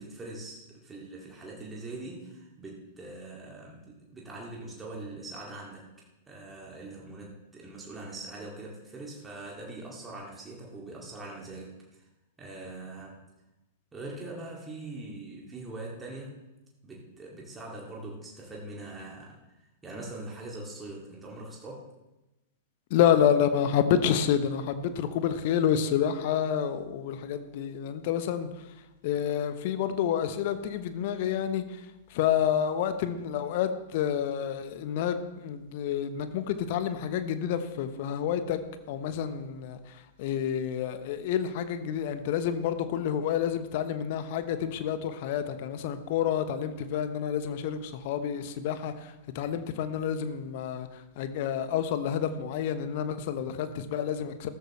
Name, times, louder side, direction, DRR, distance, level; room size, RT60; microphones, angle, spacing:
voice 1, 0.0-5.9 6.3-11.8 12.4-13.2 13.9-16.4 16.8-19.4 19.8-21.9, right 2 dB, 15° right, -3 dB, 2.5 m, -42 dB
voice 2, 22.9-28.7 29.0-38.6 38.9-54.5, left 9 dB, 50° left, 10 dB, 1.1 m, -29 dB
15.0 x 13.5 x 3.3 m, 1.0 s
figure-of-eight pair, 100°, 0 cm